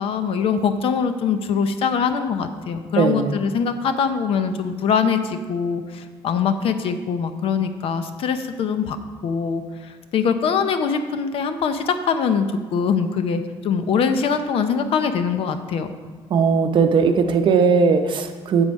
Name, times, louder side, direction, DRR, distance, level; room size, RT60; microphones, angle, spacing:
voice 1, 0.0-9.0 9.2-15.9, left 6 dB, 65° left, 9 dB, 0.7 m, -23 dB
voice 2, 3.0-3.4 16.3-18.6, right 5 dB, 50° right, 7 dB, 0.7 m, -18 dB
8.0 x 7.2 x 5.3 m, 1.4 s
cardioid pair, 160°, 10 cm